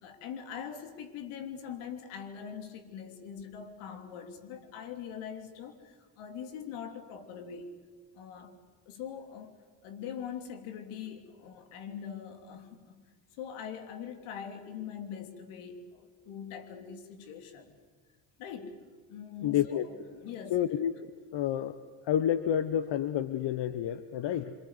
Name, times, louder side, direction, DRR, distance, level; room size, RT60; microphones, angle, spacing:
voice 1, 0.0-7.8 8.1-8.6 8.9-9.5 9.8-13.0 13.4-17.7 18.4-18.8 19.1-19.8 20.1-20.6, left 8 dB, 75° left, 6 dB, 3.1 m, -42 dB
voice 2, 19.4-19.9 20.5-20.9 21.3-21.8 22.0-24.5, left 10 dB, 55° left, 12 dB, 1.2 m, -29 dB
26.5 x 24.5 x 8.2 m, 1.4 s
hypercardioid pair, 55°, 50 cm